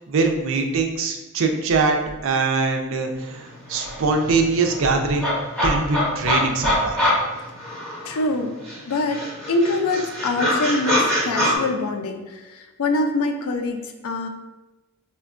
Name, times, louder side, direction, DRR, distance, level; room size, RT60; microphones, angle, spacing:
voice 1, 0.1-5.3 5.6-7.0, right 4 dB, 65° right, 4 dB, 0.4 m, -22 dB
sound 1, 3.4-3.5 3.7-8.3 8.7-11.5, left 1 dB, 5° left, 1.1 m, -24 dB
voice 2, 8.0-8.5 8.9-9.2 9.5-14.3, left 2 dB, 85° left, 5 dB, 0.4 m, -24 dB
4.3 x 2.1 x 2.4 m, 1.1 s
head